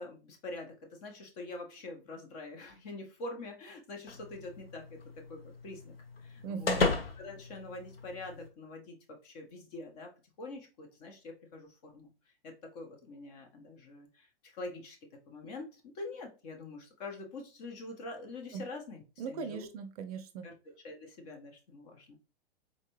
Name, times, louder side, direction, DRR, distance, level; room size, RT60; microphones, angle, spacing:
voice 1, 0.0-5.0 5.3-5.9 6.2-6.8 7.2-10.1 10.4-12.1 12.4-15.0 15.3-19.7 20.4-20.5 20.8-22.2, left 2 dB, 40° left, 3 dB, 1.2 m, -45 dB
sound 1, 4.1-8.5, left 4 dB, 75° left, 0.9 m, -36 dB
voice 2, 6.4-6.9 19.2-20.5, right 6 dB, 40° right, 9 dB, 0.5 m, -39 dB
4.1 x 3.2 x 3.1 m, 0.32 s
figure-of-eight pair, 105°, 30 cm